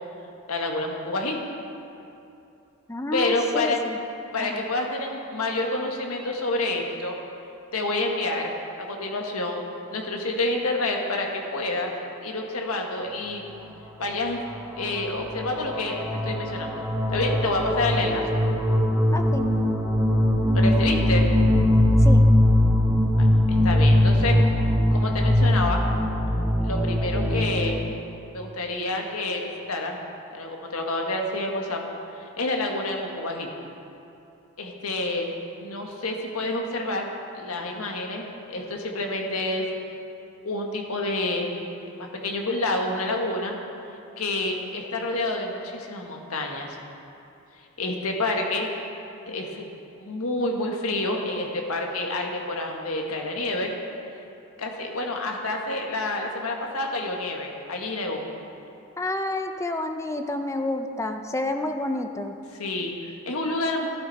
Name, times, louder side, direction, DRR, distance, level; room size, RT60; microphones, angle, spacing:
voice 1, 0.5-1.4 3.1-3.8 4.3-7.2 7.7-9.6 9.9-11.9 12.2-13.4 14.0-14.4 14.8-18.4 20.5-21.3 23.2-24.4 24.9-25.8 26.6-27.8 28.3-30.0 30.3-31.8 32.1-33.5 34.6-35.3 35.6-37.1 37.3-39.6 40.4-41.6 41.8-43.6 44.2-46.8 47.8-48.7 49.3-49.6 50.0-53.7 54.6-58.2 62.6-63.9, left 2 dB, 80° left, 1 dB, 1.6 m, -28 dB
voice 2, 2.9-4.0 4.4-4.6 19.1-19.5 22.0-22.3 59.0-62.3, left 1 dB, 15° left, 6 dB, 0.5 m, -29 dB
sound 1, 14.5-14.6 14.9-27.8, left 1 dB, 10° right, 1.1 m, -21 dB
13.0 x 12.0 x 4.2 m, 2.7 s
head